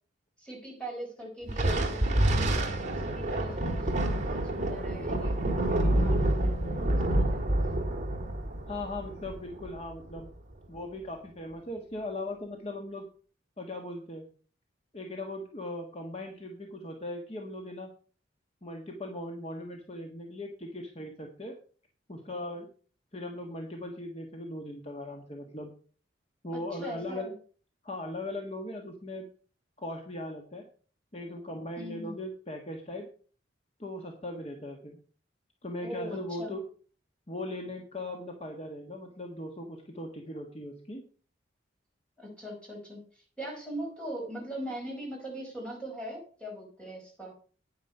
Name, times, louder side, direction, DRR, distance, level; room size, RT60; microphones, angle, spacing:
voice 1, 0.4-7.6 26.5-27.3 31.8-32.1 35.8-36.5 42.2-47.3, right 1 dB, 5° left, -1 dB, 5.0 m, -41 dB
Thunder, 1.5-10.2, right 1 dB, 40° right, 1.9 m, -28 dB
voice 2, 8.7-10.3 10.7-13.1 13.6-14.3 14.9-17.9 18.6-21.5 22.1-22.7 23.1-25.7 26.4-27.3 27.8-29.3 29.8-30.6 31.1-33.0 33.8-35.0 35.6-36.6 37.3-41.0, left 1 dB, 35° left, 2 dB, 1.4 m, -39 dB
9.6 x 9.5 x 5.4 m, 0.42 s
head